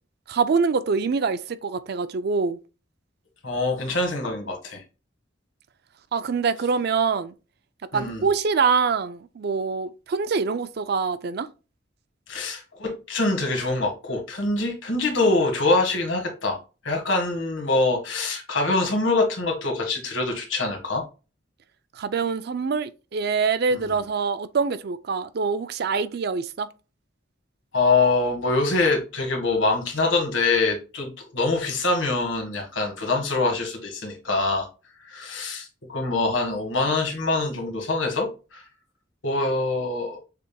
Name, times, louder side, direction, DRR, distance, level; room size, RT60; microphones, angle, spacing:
voice 1, 0.3-2.6 6.1-7.3 7.9-11.5 21.9-26.7, right 5 dB, 55° right, 0.4 m, -25 dB
voice 2, 3.4-4.8 7.9-8.2 12.3-16.6 16.8-21.0 23.7-23.8 27.7-34.7 35.0-38.6 39.2-40.2, left 3 dB, 80° left, 1.7 m, -24 dB
6.6 x 3.5 x 2.3 m
head